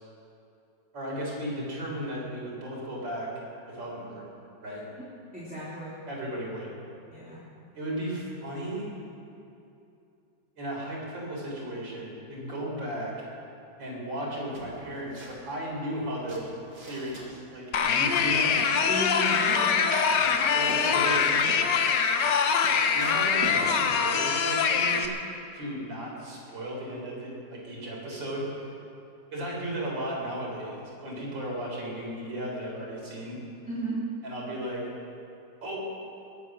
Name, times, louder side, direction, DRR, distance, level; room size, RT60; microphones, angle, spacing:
voice 1, 0.9-3.3 3.7-4.2 4.6-4.9 6.1-6.7 7.7-8.9 10.6-13.1 13.8-16.5 16.8-18.6 20.5-21.5 22.9-25.1 25.5-28.7 29.3-33.4 34.2-34.9 35.6-35.8, right 1 dB, 80° right, -3 dB, 4.5 m, -35 dB
voice 2, 5.3-5.9 7.1-7.4 18.9-19.9 33.6-34.0, right 1 dB, 5° right, -10 dB, 3.2 m, -34 dB
sound 1, 14.5-15.4 15.7-17.3 17.9-19.1 19.8-21.7 22.2-23.6, right 3 dB, 65° right, 2.9 m, -43 dB
sound 2, 17.7-25.1, left 6 dB, 70° left, 1.6 m, -24 dB
22.0 x 9.2 x 6.1 m, 2.7 s
omnidirectional pair, 2.0 m